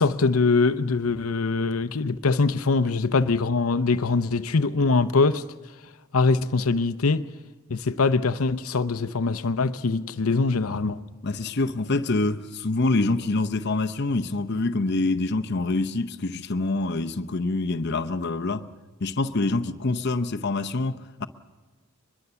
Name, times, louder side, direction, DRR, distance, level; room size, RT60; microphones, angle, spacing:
voice 1, 0.0-5.4 6.1-7.3 7.7-11.0, left 3 dB, 90° left, 0.8 m, -23 dB
voice 2, 11.2-18.7 19.0-21.3, left 2 dB, 50° left, 0.8 m, -26 dB
24.0 x 21.5 x 6.9 m
head